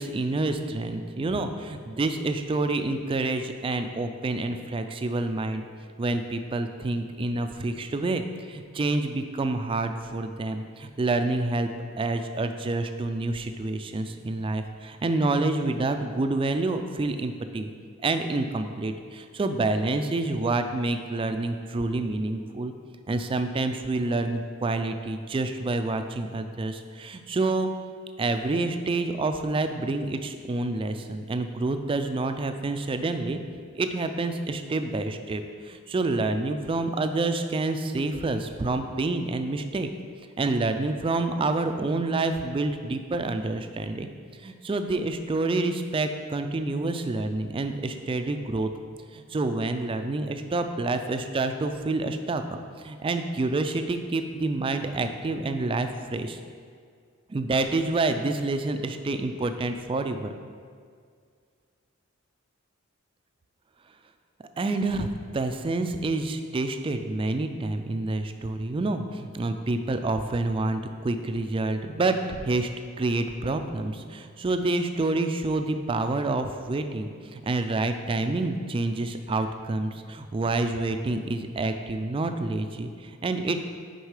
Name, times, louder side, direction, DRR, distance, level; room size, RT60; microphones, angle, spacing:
voice 1, 0.0-5.7 6.0-11.7 12.0-17.7 18.0-22.7 23.1-27.7 28.2-33.4 33.7-39.9 40.4-44.1 44.4-48.7 49.1-52.4 52.8-56.4 57.3-60.3 64.6-72.7 73.0-83.6, right 2 dB, 25° right, 7 dB, 0.3 m, -28 dB
6.5 x 4.6 x 4.8 m, 2.1 s
head